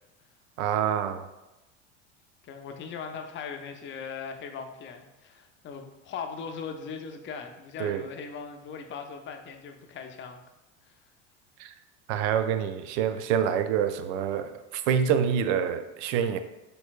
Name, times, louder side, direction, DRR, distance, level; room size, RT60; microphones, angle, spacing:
voice 1, 0.6-1.3 7.8-8.0 11.6-11.7 12.1-16.4, right 8 dB, 65° right, 10 dB, 0.5 m, -26 dB
voice 2, 2.4-10.4 10.9-11.0, left 6 dB, 30° left, 5 dB, 0.5 m, -39 dB
4.3 x 3.3 x 2.4 m, 0.99 s
hypercardioid pair, 85°, 37 cm